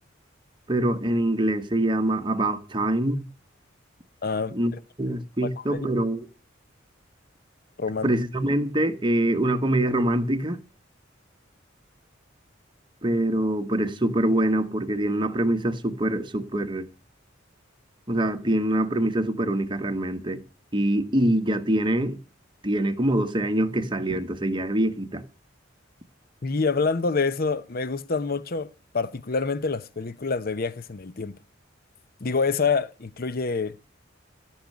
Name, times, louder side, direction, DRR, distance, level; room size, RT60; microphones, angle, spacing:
voice 1, 0.7-3.3 4.5-4.7 5.0-6.3 8.0-10.6 13.0-16.9 18.1-20.4 20.7-22.2 22.6-25.2, right 1 dB, 25° right, 1.3 m, -24 dB
voice 2, 4.2-4.5 5.7-5.9 7.8-8.1 26.4-31.4 32.2-33.8, left 4 dB, 50° left, 0.8 m, -26 dB
14.5 x 6.6 x 9.5 m
head